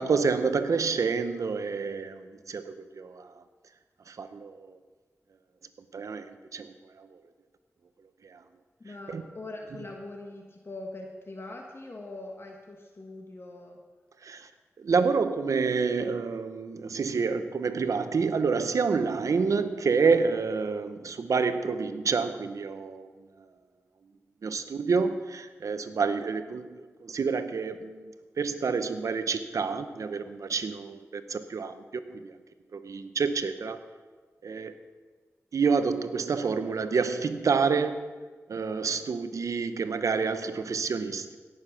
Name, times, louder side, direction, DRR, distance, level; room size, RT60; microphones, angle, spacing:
voice 1, 0.0-3.3 4.1-4.8 5.9-7.1 8.2-8.4 9.1-9.2 9.8-9.9 14.2-14.5 14.8-23.1 24.4-31.8 32.1-32.3 32.7-33.8 34.4-34.7 35.5-38.2 38.5-41.4, right 5 dB, 80° right, 10 dB, 0.8 m, -28 dB
voice 2, 8.8-13.8 26.5-26.6, left 2 dB, 45° left, 1 dB, 1.4 m, -42 dB
16.5 x 6.6 x 5.8 m, 1.4 s
cardioid pair, 60°, 5 cm